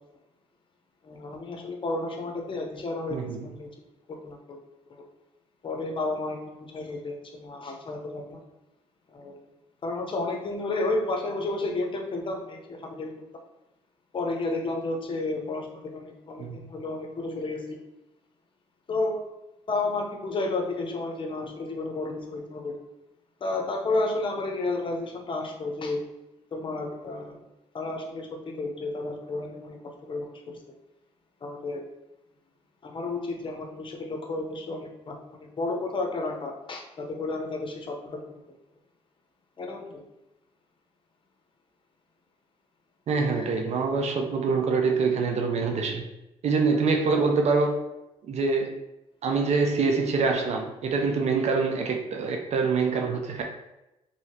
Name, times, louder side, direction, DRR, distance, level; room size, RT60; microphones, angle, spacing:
voice 1, 1.0-3.7 4.1-4.6 4.9-5.0 5.6-8.4 9.1-9.4 9.8-13.1 14.1-17.8 18.9-19.2 19.7-22.8 23.4-26.0 26.5-27.4 27.7-30.6 31.4-31.8 32.8-38.4 39.6-40.0 43.4-43.5, left 2 dB, 40° left, 2 dB, 0.7 m, -32 dB
voice 2, 3.1-3.5 16.4-16.6 43.1-46.1 46.4-47.8 48.3-48.8 49.2-53.4, right 4 dB, 55° right, 3 dB, 0.5 m, -25 dB
2.8 x 2.7 x 2.8 m, 0.93 s
supercardioid pair, 60°, 13 cm